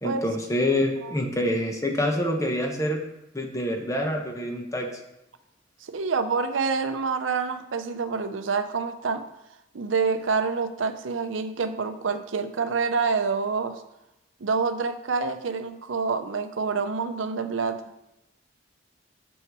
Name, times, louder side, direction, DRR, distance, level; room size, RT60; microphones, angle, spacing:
voice 1, 0.0-3.0 3.3-4.9, left 1 dB, 15° left, 3 dB, 0.9 m, -26 dB
voice 2, 5.8-9.2 9.7-13.8 14.4-17.8, right 5 dB, 80° right, 9 dB, 0.6 m, -27 dB
6.3 x 5.7 x 4.7 m, 0.90 s
head